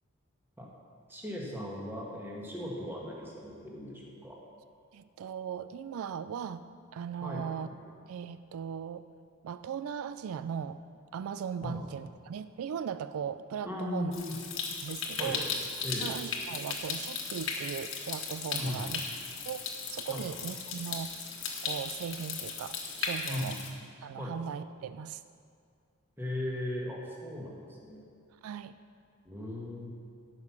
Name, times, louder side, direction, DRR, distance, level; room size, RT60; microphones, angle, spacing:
voice 1, 1.1-4.4 7.2-7.4 11.6-11.8 13.6-14.4 15.2-15.5 15.8-16.1 18.5-18.9 20.1-20.2 23.3-23.5 24.2-24.3 26.2-28.1 29.2-29.9, left 1 dB, 10° right, -3 dB, 1.5 m, -37 dB
voice 2, 4.9-6.6 6.9-7.7 8.1-9.0 9.4-10.8 11.1-14.1 14.8-15.4 16.0-19.0 19.5-21.1 21.6-23.6 24.0-25.2 28.4-28.7, right 7 dB, 75° right, 13 dB, 0.3 m, -38 dB
Stream, 14.1-23.7, left 5 dB, 60° left, 1.4 m, -36 dB
13.0 x 5.9 x 5.9 m, 2.2 s
head